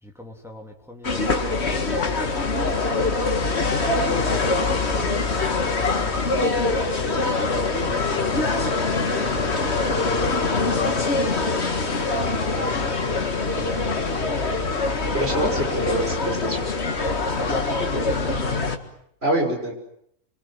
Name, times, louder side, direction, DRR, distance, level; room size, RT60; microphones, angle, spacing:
voice 1, 0.0-3.0 4.0-9.6 10.1-11.3 11.8-14.1 15.1-15.5 17.2-18.6, left 1 dB, ahead, 1 dB, 3.4 m, -39 dB
sound 1, 1.0-18.8, left 3 dB, 50° left, 2.1 m, -23 dB
voice 2, 15.1-16.7 19.2-19.7, equal, 45° right, 2 dB, 6.5 m, -25 dB
26.5 x 24.5 x 7.9 m, 0.72 s
omnidirectional pair, 1.4 m